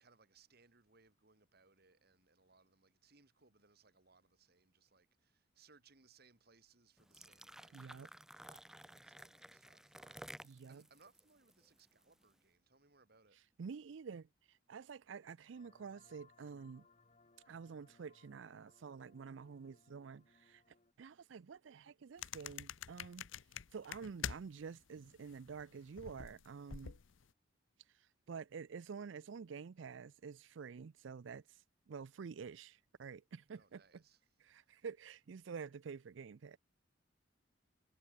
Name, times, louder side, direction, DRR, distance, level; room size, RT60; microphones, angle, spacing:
voice 1, 0.0-13.4 33.5-34.2 34.7-34.8, right 4 dB, 55° right, 2.5 m, -69 dB
sound 1, 7.0-12.2, right 1 dB, 5° right, 0.5 m, -55 dB
voice 2, 7.7-8.1 10.4-10.8 13.6-16.9 17.5-20.6 21.0-23.3 23.7-27.0 27.9-34.0 34.4-36.6, right 5 dB, 70° right, 0.4 m, -49 dB
sound 2, 15.5-20.9, left 3 dB, 35° left, 1.8 m, -69 dB
sound 3, 22.2-24.7 25.0-27.2, left 8 dB, 80° left, 0.7 m, -46 dB
head